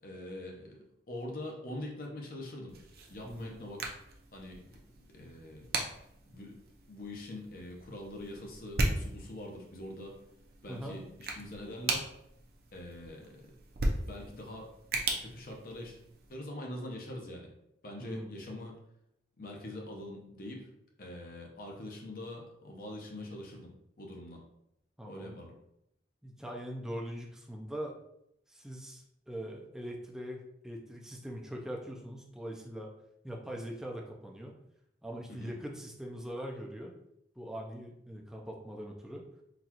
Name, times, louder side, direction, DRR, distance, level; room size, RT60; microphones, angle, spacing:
voice 1, 0.0-2.8 3.1-3.9 4.3-4.6 5.1-5.7 6.3-6.6 6.9-10.2 10.6-12.1 12.7-13.4 14.1-14.7 15.2-16.0 16.3-17.5 17.8-18.7 19.4-20.7 21.0-23.7 24.0-24.4 25.0-25.5 35.3-35.5, left 1 dB, 50° left, 0 dB, 0.7 m, -43 dB
sound 1, 2.7-16.4, right 2 dB, 55° right, 0.5 m, -38 dB
voice 2, 18.0-18.3 25.0-25.4 26.2-28.0 28.5-32.9 33.2-34.6 35.0-37.0 37.4-39.3, equal, 5° right, -1 dB, 0.4 m, -42 dB
3.9 x 2.3 x 2.9 m, 0.78 s
head